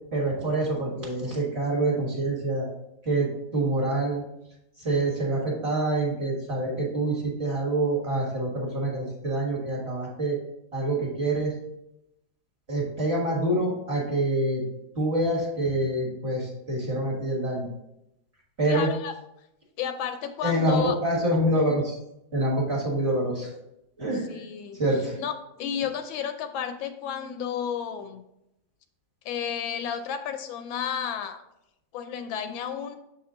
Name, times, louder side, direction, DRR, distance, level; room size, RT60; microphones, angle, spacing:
voice 1, 0.1-2.7 3.0-4.2 4.8-10.4 10.7-11.5 12.7-14.6 15.0-17.7 18.6-18.9 20.4-22.0 22.3-23.5 24.0-24.2 24.8-25.2, right 1 dB, 35° right, -4 dB, 1.8 m, -26 dB
voice 2, 18.7-19.1 19.8-21.0 24.3-24.8 25.2-25.3 25.6-28.2 29.2-31.4 31.9-33.0, left 8 dB, 80° left, 8 dB, 1.3 m, -32 dB
7.0 x 4.4 x 3.8 m, 0.84 s
omnidirectional pair, 2.2 m